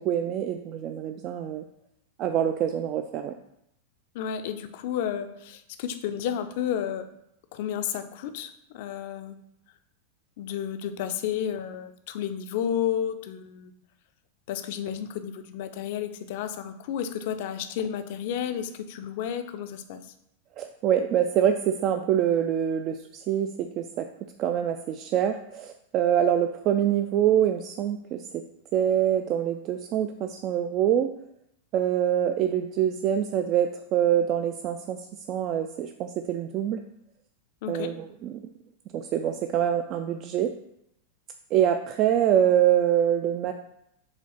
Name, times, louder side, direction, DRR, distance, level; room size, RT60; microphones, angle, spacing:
voice 1, 0.0-1.6 2.2-3.3 20.6-24.1 24.4-28.2 28.7-31.1 31.7-35.0 35.3-36.8 37.7-38.3 38.9-40.5 41.5-43.5, right 10 dB, 35° right, 6 dB, 0.3 m, -25 dB
voice 2, 4.1-7.0 7.5-9.4 10.4-13.7 14.5-20.0 37.6-37.9, left 9 dB, 50° left, 9 dB, 0.5 m, -32 dB
5.0 x 3.5 x 5.5 m, 0.79 s
figure-of-eight pair, 90°, 0 cm